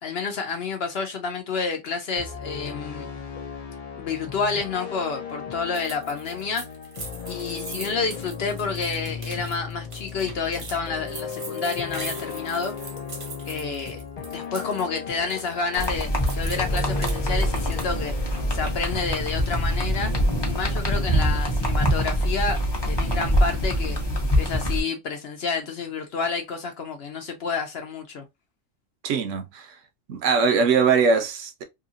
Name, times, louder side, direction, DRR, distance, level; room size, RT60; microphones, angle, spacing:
voice 1, 0.0-3.1 4.0-6.7 7.3-12.7 13.5-14.0 14.3-16.1 16.4-18.1 18.5-20.1 20.4-22.6 22.9-24.0 24.4-28.2, left 4 dB, 60° left, 0.7 m, -29 dB
sound 1, 2.2-21.3, left 6 dB, 80° left, 0.3 m, -37 dB
sound 2, 5.7-14.8 15.1-18.0, right 4 dB, 40° right, 0.5 m, -41 dB
sound 3, 15.8-24.8, equal, 25° left, 0.6 m, -24 dB
voice 2, 29.0-29.7 30.1-31.6, right 5 dB, 70° right, 0.9 m, -21 dB
2.7 x 2.7 x 2.5 m
omnidirectional pair, 1.4 m